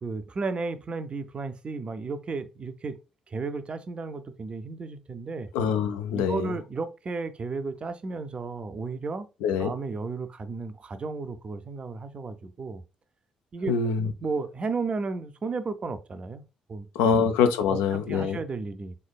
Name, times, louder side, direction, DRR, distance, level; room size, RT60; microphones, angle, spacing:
voice 1, 0.0-3.0 3.3-5.5 6.1-9.3 9.6-12.8 13.5-13.7 14.2-16.4 16.7-17.3 17.7-18.9, right 4 dB, 35° right, 0.4 m, -33 dB
voice 2, 5.5-6.5 9.4-9.7 13.7-14.1 17.0-18.4, left 6 dB, 65° left, 0.4 m, -24 dB
3.8 x 3.3 x 2.3 m
figure-of-eight pair, 40°, 3 cm